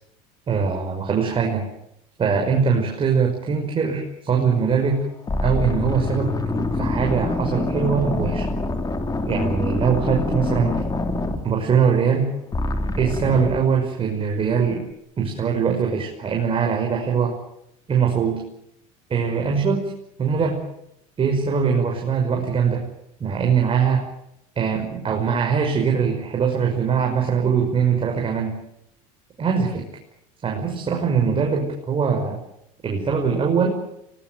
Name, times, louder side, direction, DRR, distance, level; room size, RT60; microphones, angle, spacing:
voice 1, 0.5-1.7 2.2-5.0 5.4-6.3 6.6-8.5 9.2-10.8 11.4-12.3 13.0-14.9 15.2-17.3 17.9-18.4 19.1-19.9 20.2-20.6 21.2-22.9 23.2-24.1 24.6-28.6 29.4-29.9 30.4-32.4 32.8-33.8, right 6 dB, 30° right, 1 dB, 5.9 m, -22 dB
sound 1, 4.6-4.9 5.3-12.2 12.5-13.6, left 2 dB, 20° left, 3.3 m, -25 dB
24.5 x 20.0 x 9.3 m, 0.78 s
supercardioid pair, 100°, 18 cm